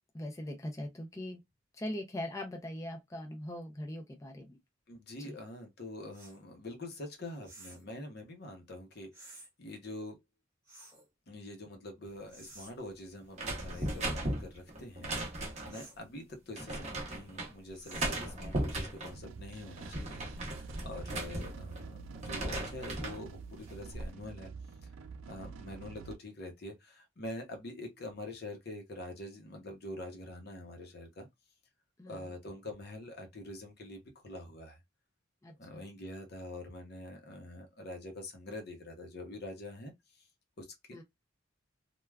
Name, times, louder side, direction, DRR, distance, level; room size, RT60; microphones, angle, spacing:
voice 1, 0.1-1.4 1.8-4.6 5.2-5.4 18.1-18.6 32.0-32.3 35.4-35.9 40.9-41.0, left 1 dB, 15° left, 0.4 m, -41 dB
voice 2, 4.9-10.2 11.3-24.5 25.3-31.3 32.1-34.8 35.6-40.2 40.6-40.7, left 1 dB, 55° left, 0.8 m, -45 dB
sound 1, 6.1-6.4 7.4-7.9 9.1-9.5 10.7-11.1 12.3-12.7 13.7-14.0 15.7-16.0 17.7-18.3, right 2 dB, 15° right, 1.0 m, -53 dB
sound 2, 13.3-15.8 16.6-17.5 17.9-19.2 19.6-21.8 22.1-23.2 23.7-24.1, right 1 dB, 35° right, 0.8 m, -37 dB
sound 3, 19.1-26.2, right 4 dB, 90° right, 0.4 m, -47 dB
3.3 x 2.2 x 2.2 m
head